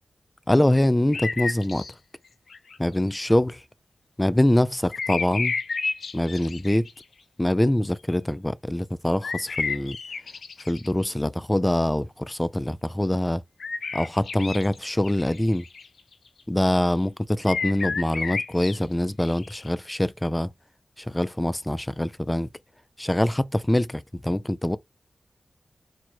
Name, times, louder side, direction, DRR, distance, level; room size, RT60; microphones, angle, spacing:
voice 1, 0.5-1.8 2.8-3.6 4.2-5.5 6.1-6.8 7.4-10.0 10.7-13.4 13.9-15.6 16.5-20.5 21.0-22.5 23.0-24.8, left 1 dB, 15° left, 0.3 m, -24 dB
sound 1, 1.1-1.9 2.5-3.1 4.9-7.0 8.1-8.2 9.2-10.9 13.6-14.8 15.0-16.3 17.5-19.7, left 4 dB, 80° left, 0.6 m, -31 dB
4.3 x 2.1 x 4.4 m
cardioid pair, 60°, 0 cm